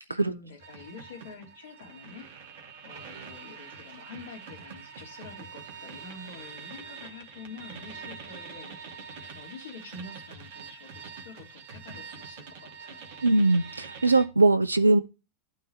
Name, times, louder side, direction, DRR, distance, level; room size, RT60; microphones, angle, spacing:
voice 1, 0.0-2.3 2.8-9.1 9.3-13.2, left 3 dB, 65° left, 3.0 m, -47 dB
sound 1, 0.6-14.3, right 5 dB, 50° right, 1.7 m, -45 dB
voice 2, 13.2-15.0, right 2 dB, 80° right, 0.4 m, -21 dB
11.5 x 4.0 x 4.3 m
figure-of-eight pair, 90°, 0 cm